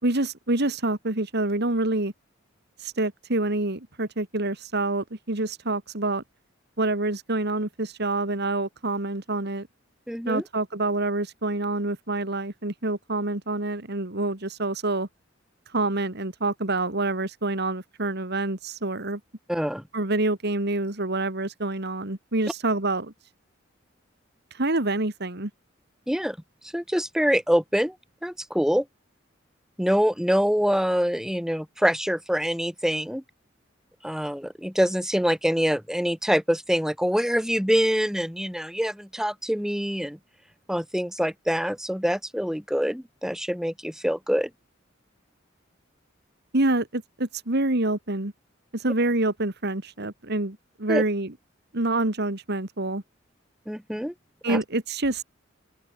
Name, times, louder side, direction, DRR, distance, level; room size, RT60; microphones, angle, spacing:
voice 1, 0.0-2.1 2.8-6.2 6.8-9.7 10.3-15.1 15.7-19.2 19.9-23.1 24.5-25.5 46.5-48.3 48.7-51.3 51.7-53.0 54.4-55.2, right 2 dB, 60° right, 2.5 m, -27 dB
voice 2, 10.1-10.4 19.5-19.8 26.1-26.4 26.7-28.0 28.2-28.9 29.8-33.2 34.0-40.2 40.7-44.5 50.9-51.0 53.7-54.1 54.5-54.6, equal, 5° right, 6.2 m, -25 dB
open air
head